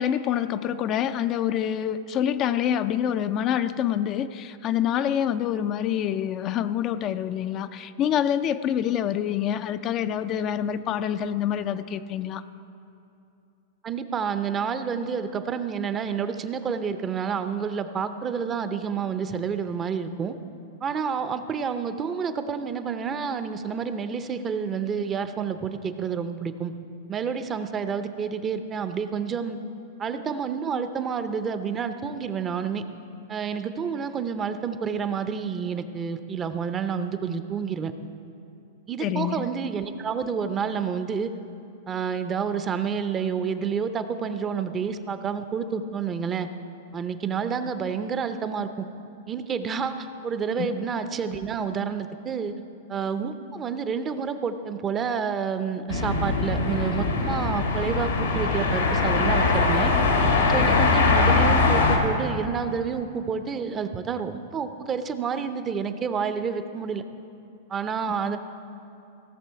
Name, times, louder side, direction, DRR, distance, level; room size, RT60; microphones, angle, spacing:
voice 1, 0.0-12.4 39.0-39.4 50.6-50.8 60.6-60.8 68.3-68.4, left 10 dB, 35° left, 10 dB, 0.4 m, -26 dB
voice 2, 13.8-20.4 20.8-26.7 27.1-29.6 30.0-32.8 33.3-37.9 38.9-41.3 41.9-46.5 46.9-48.9 49.3-52.5 52.9-59.9 60.5-67.0 67.7-68.4, right 6 dB, 25° right, 10 dB, 0.6 m, -29 dB
sound 1, 55.9-62.0, left 3 dB, 90° left, 1.8 m, -22 dB
16.5 x 6.7 x 4.7 m, 2.7 s
hypercardioid pair, 110°, 0 cm